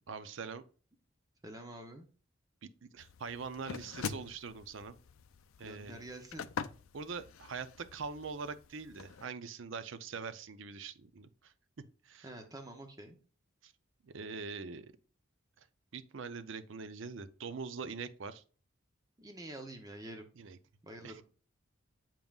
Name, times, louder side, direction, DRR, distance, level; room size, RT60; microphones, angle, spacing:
voice 1, 0.1-0.6 2.6-5.0 5.6-6.0 6.9-11.5 12.0-12.3 13.6-13.7 14.0-14.9 15.6-15.7 15.9-18.4 20.4-20.6 21.0-21.2, right 5 dB, 65° right, 0.6 m, -43 dB
voice 2, 1.4-2.1 5.6-6.4 12.2-13.2 19.2-20.3 20.8-21.2, right 1 dB, 15° right, 0.7 m, -47 dB
sound 1, 3.0-9.3, left 6 dB, 75° left, 0.4 m, -45 dB
7.4 x 5.3 x 2.4 m
head